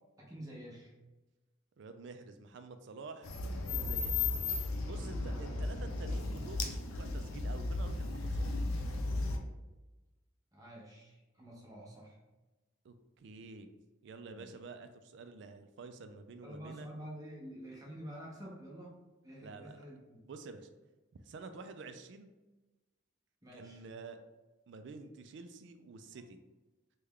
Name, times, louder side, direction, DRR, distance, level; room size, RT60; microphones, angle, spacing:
voice 1, 0.2-0.9 4.9-5.1 10.5-12.2 14.3-14.6 16.4-20.2 23.4-23.8, equal, 15° right, -4 dB, 0.7 m, -49 dB
voice 2, 1.8-4.3 4.8-8.5 12.8-13.7 14.0-16.9 19.4-19.9 20.3-20.7 21.3-22.3 23.5-24.2 24.7-26.4, right 4 dB, 60° right, 8 dB, 0.3 m, -49 dB
sound 1, 3.2-9.4, left 3 dB, 85° left, 0.5 m, -35 dB
3.2 x 2.2 x 3.6 m, 1.1 s
head